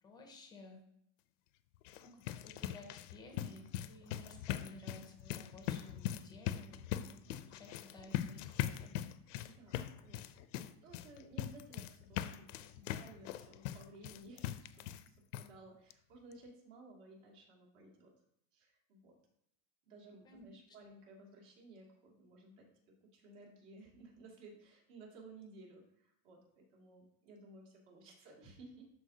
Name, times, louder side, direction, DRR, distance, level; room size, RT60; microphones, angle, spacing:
voice 1, 0.0-0.8 2.0-9.0 20.2-20.5, left 2 dB, 10° left, 4 dB, 0.5 m, -55 dB
sound 1, 1.7-15.1 15.3-15.5 15.9-16.0 16.3-16.4, left 12 dB, 65° left, 0.5 m, -41 dB
voice 2, 9.4-18.1 18.5-19.2 19.9-22.7 23.0-28.9, right 2 dB, 65° right, -1 dB, 2.5 m, -57 dB
12.5 x 4.5 x 2.8 m, 0.75 s
supercardioid pair, 175°, 40 cm